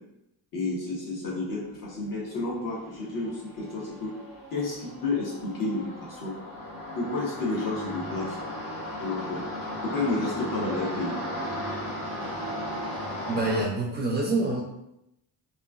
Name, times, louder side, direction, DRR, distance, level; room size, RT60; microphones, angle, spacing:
voice 1, 0.5-4.1 4.5-6.3 6.9-8.4 9.0-9.4 9.8-11.2, left 2 dB, 55° left, -5 dB, 1.2 m, -31 dB
sound 1, 1.3-1.6 1.9-13.6, left 1 dB, 70° left, 1.5 m, -36 dB
voice 2, 13.3-14.6, right 2 dB, 25° right, -1 dB, 0.4 m, -26 dB
3.0 x 2.4 x 2.3 m, 0.82 s
cardioid pair, 110°, 40 cm